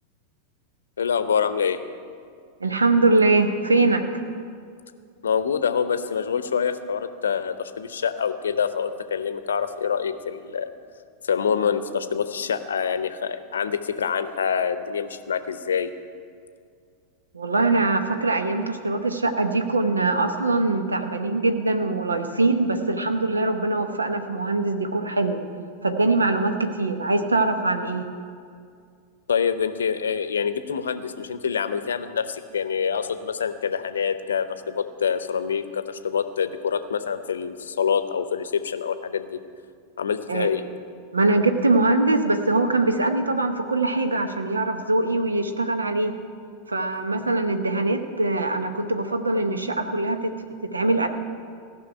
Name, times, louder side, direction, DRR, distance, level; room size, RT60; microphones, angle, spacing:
voice 1, 1.0-1.8 5.2-10.7 11.2-15.9 29.3-39.4 40.0-40.6, left 7 dB, 65° left, 12 dB, 0.7 m, -26 dB
voice 2, 2.6-4.0 17.3-25.4 25.8-28.0 40.3-40.5 41.1-46.1 46.7-50.3 50.7-51.1, right 2 dB, 80° right, 7 dB, 1.0 m, -22 dB
16.0 x 6.2 x 8.8 m, 2.2 s
figure-of-eight pair, 90°, 0 cm